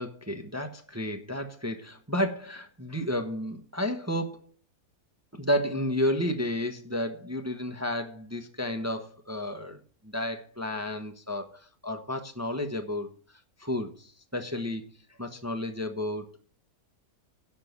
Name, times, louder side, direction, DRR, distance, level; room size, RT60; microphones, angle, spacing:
voice 1, 0.0-4.5 5.3-13.1 13.6-14.9 15.2-16.2, left 1 dB, 10° right, 5 dB, 1.0 m, -32 dB
11.0 x 5.9 x 7.0 m, 0.42 s
omnidirectional pair, 1.6 m